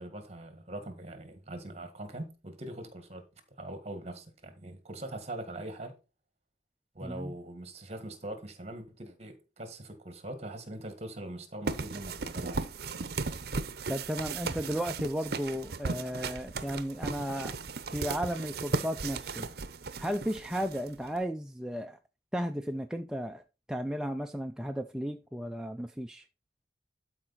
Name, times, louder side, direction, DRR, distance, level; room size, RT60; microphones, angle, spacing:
voice 1, 0.0-3.3 3.6-6.0 6.9-12.7, right 1 dB, 35° right, 1.7 m, -42 dB
voice 2, 7.0-7.3 13.9-17.6 17.9-19.5 20.0-22.0 22.3-23.4 23.7-26.2, equal, 5° right, 0.4 m, -34 dB
sound 1, 11.7-21.2, right 4 dB, 60° right, 0.7 m, -36 dB
12.0 x 4.8 x 4.1 m
head